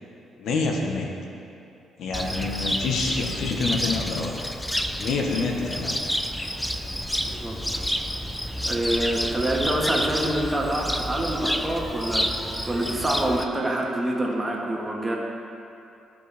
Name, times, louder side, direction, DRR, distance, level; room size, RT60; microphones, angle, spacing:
voice 1, 0.4-1.1 2.0-4.4 5.0-6.0, left 3 dB, 75° left, 1 dB, 1.0 m, -27 dB
Cricket, 2.1-13.4, equal, 5° left, 0.5 m, -29 dB
voice 2, 7.3-7.8 8.7-12.3 12.6-15.2, right 1 dB, 15° right, -2 dB, 1.5 m, -26 dB
14.5 x 5.3 x 3.4 m, 2.6 s
cardioid pair, 90°, 0 cm